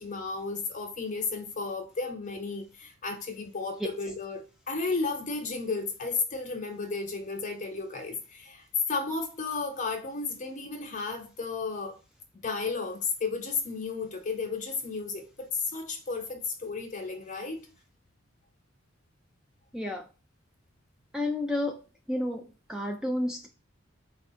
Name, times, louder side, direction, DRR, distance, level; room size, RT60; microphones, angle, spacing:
voice 1, 0.0-12.0 12.4-17.7, left 4 dB, 40° left, 1.0 m, -33 dB
voice 2, 19.7-20.1 21.1-21.8 22.1-23.5, left 1 dB, 5° right, 0.4 m, -31 dB
4.5 x 2.4 x 4.2 m
head